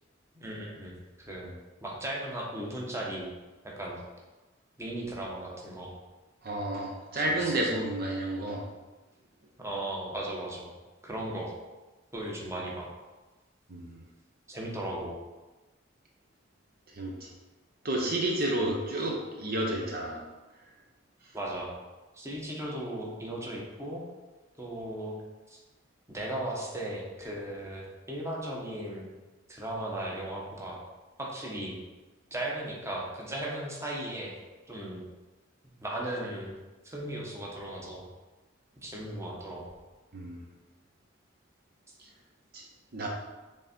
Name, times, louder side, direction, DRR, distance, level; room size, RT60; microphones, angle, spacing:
voice 1, 0.3-0.9 1.2-1.5 1.8-3.3 3.6-4.0 4.8-5.9 7.1-7.7 9.6-10.7 11.0-11.5 12.1-12.9 14.5-15.2 21.3-21.7 22.1-24.0 24.6-25.1 25.5-25.6 26.1-29.1 29.5-30.8 31.2-31.7 32.3-34.3 34.7-35.0 35.8-36.5 36.8-38.0 38.8-39.6, right 1 dB, 15° right, -3 dB, 1.1 m, -36 dB
voice 2, 6.4-8.6 13.7-14.0 16.9-17.3 17.8-20.2 40.1-40.4 42.5-42.6 42.9-43.1, right 1 dB, 55° right, 0 dB, 0.8 m, -31 dB
6.4 x 3.5 x 4.3 m, 1.2 s
head